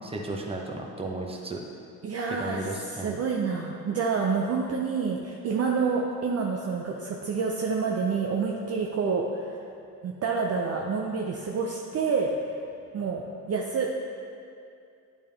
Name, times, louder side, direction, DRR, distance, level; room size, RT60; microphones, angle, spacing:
voice 1, 0.0-1.6 2.3-3.2, right 2 dB, 15° right, 0 dB, 0.9 m, -34 dB
voice 2, 2.0-9.6 10.0-12.3 12.9-14.1, right 5 dB, 40° right, 0 dB, 0.6 m, -28 dB
8.6 x 3.5 x 3.4 m, 2.5 s
supercardioid pair, 65°, 40 cm